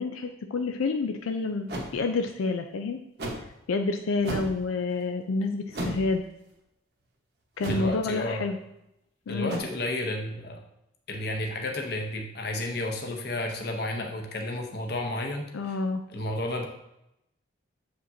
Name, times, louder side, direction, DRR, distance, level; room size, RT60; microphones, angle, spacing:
voice 1, 0.0-1.7 1.9-3.0 3.7-6.2 7.6-8.6 9.3-9.6 15.5-16.0, left 3 dB, 90° left, 6 dB, 0.4 m, -28 dB
sound 1, 1.7-1.9 3.2-3.5 4.2-4.6 5.7-6.1 7.6-7.9 9.5-9.6, right 1 dB, 50° right, 1.1 m, -33 dB
voice 2, 7.7-8.4 9.3-10.6 11.1-15.8 16.1-16.7, left 1 dB, 50° left, 3 dB, 0.9 m, -32 dB
7.3 x 5.1 x 2.7 m, 0.84 s
head